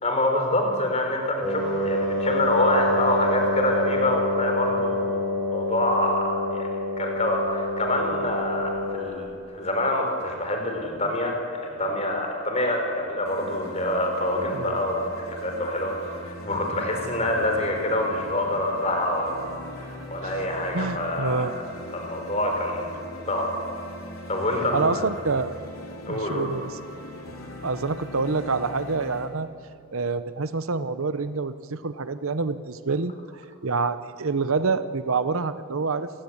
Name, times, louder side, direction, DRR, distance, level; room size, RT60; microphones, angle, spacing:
voice 1, 0.0-6.7 7.0-15.0 15.4-19.3 19.8-21.4 21.9-22.9 23.3-23.5 24.3-25.0 26.1-26.5, left 1 dB, 30° left, 3 dB, 4.3 m, -26 dB
Wind instrument woodwind instrument, 1.4-9.0, left 1 dB, ahead, 5.5 m, -27 dB
sound 1, 13.3-29.3, left 1 dB, 70° left, 3.9 m, -40 dB
voice 2, 20.7-21.5 24.7-25.6 26.1-26.7 27.6-29.5 29.9-36.1, right 4 dB, 70° right, 13 dB, 0.8 m, -27 dB
27.5 x 19.0 x 8.7 m, 2.5 s
head